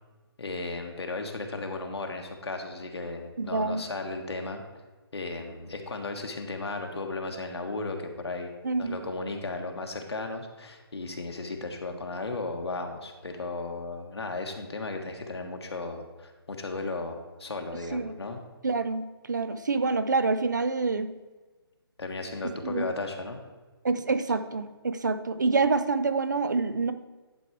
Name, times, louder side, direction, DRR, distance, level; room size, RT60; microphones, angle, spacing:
voice 1, 0.4-4.6 5.1-8.5 8.8-18.4 22.0-23.4, left 3 dB, 85° left, 3 dB, 1.5 m, -35 dB
voice 2, 3.4-3.8 8.6-9.0 17.9-18.1 18.6-21.1 22.6-22.9 23.8-26.9, right 4 dB, 45° right, 11 dB, 0.5 m, -27 dB
11.0 x 4.7 x 4.6 m, 1.3 s
hypercardioid pair, 180°, 13 cm